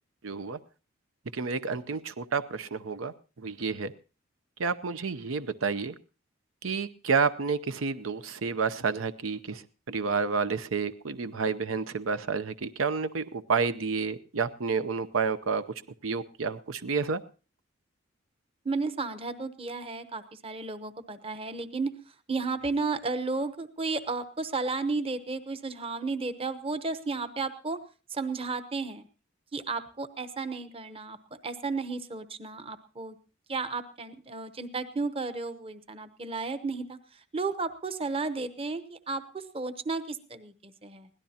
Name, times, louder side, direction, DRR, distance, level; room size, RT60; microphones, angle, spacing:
voice 1, 0.2-0.6 1.3-3.1 3.4-3.9 4.6-5.9 6.6-9.6 9.9-15.6 16.0-17.2, right 5 dB, 90° right, 12 dB, 0.7 m, -30 dB
voice 2, 18.6-21.9 22.3-27.8 28.1-29.1 29.5-31.2 31.4-33.2 33.5-41.1, right 3 dB, 30° right, 11 dB, 0.9 m, -33 dB
22.5 x 17.0 x 2.8 m, 0.34 s
head